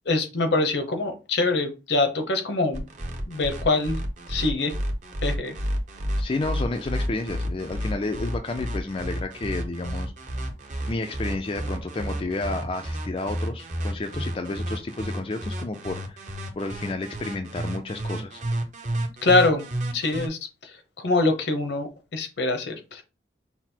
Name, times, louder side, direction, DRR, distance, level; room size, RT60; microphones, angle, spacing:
voice 1, 0.1-2.8 3.3-4.0 4.3-4.7 5.2-5.6 19.2-19.6 19.9-20.4 21.0-23.0, left 2 dB, 75° left, 6 dB, 0.9 m, -24 dB
sound 1, 2.7-20.3, equal, 40° right, 0.8 m, -31 dB
voice 2, 6.2-10.1 10.9-16.2 16.6-18.4, left 2 dB, 30° left, 6 dB, 0.4 m, -31 dB
5.7 x 2.0 x 4.4 m, 0.30 s
head